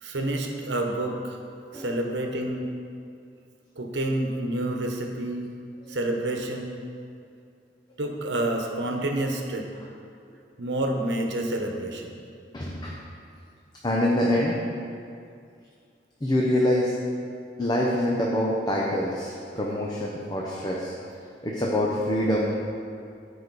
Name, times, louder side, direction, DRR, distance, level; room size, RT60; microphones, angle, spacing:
voice 1, 0.0-1.4 1.7-2.7 3.8-5.5 5.9-6.8 8.0-9.7 10.6-12.2, right 1 dB, 90° right, 2 dB, 1.0 m, -28 dB
voice 2, 12.5-13.0 13.8-14.6 16.2-16.9 17.6-20.9 21.4-22.5, left 1 dB, 25° left, -3 dB, 0.8 m, -25 dB
13.5 x 5.0 x 4.1 m, 2.3 s
head